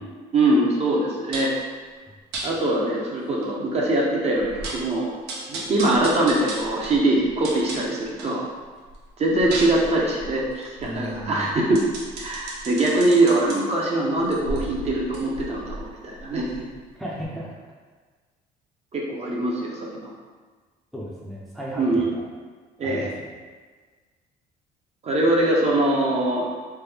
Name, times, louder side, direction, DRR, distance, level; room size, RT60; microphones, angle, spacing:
voice 1, 0.3-1.5 2.4-5.1 5.5-8.4 9.2-11.9 12.2-16.7 18.9-20.1 21.8-22.1 22.8-23.1 25.0-26.5, right 2 dB, 40° right, -3 dB, 0.7 m, -22 dB
sound 1, 1.3-1.6 2.3-2.5 3.0-3.1 3.4-3.5 4.0-4.1 4.4-4.9 5.3-8.4 8.8-13.6 14.2-16.9 17.2-17.3, right 2 dB, 85° right, 0.7 m, -35 dB
voice 2, 10.8-11.5 17.0-17.6 20.9-22.2 22.8-23.3, equal, ahead, -5 dB, 0.5 m, -35 dB
3.2 x 2.1 x 3.3 m, 1.5 s
cardioid pair, 110°, 17 cm